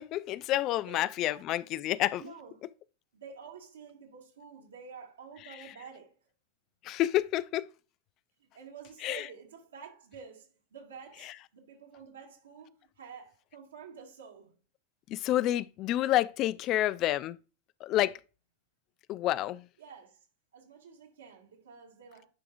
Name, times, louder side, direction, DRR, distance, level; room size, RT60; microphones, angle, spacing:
voice 1, 0.0-2.2 6.8-7.7 9.0-9.2 15.1-17.4 17.8-18.1 19.1-19.7, left 14 dB, 45° left, 0.3 m, -29 dB
voice 2, 2.2-2.6 3.1-6.1 8.4-14.6 19.8-20.2 20.5-22.3, right 6 dB, 80° right, 2.1 m, -49 dB
10.5 x 4.9 x 2.5 m
hypercardioid pair, 95°, 0 cm